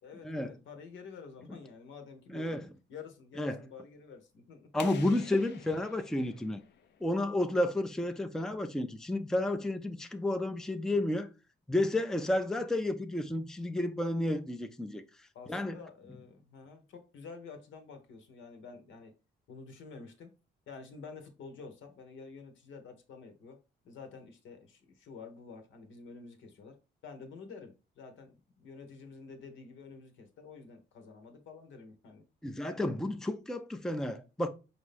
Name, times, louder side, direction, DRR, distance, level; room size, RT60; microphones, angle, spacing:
voice 1, 0.0-2.6 2.9-4.7 15.3-19.1 19.5-20.3 20.7-23.6 23.8-26.8 27.0-32.2, left 5 dB, 75° left, 1.1 m, -49 dB
voice 2, 2.3-2.6 3.4-3.6 4.7-6.6 7.0-11.3 11.7-15.0 15.5-15.8 32.4-34.5, left 1 dB, 5° left, 0.4 m, -31 dB
sound 1, 4.8-7.4, left 7 dB, 60° left, 0.6 m, -49 dB
4.9 x 2.7 x 3.4 m
cardioid pair, 90°, 20 cm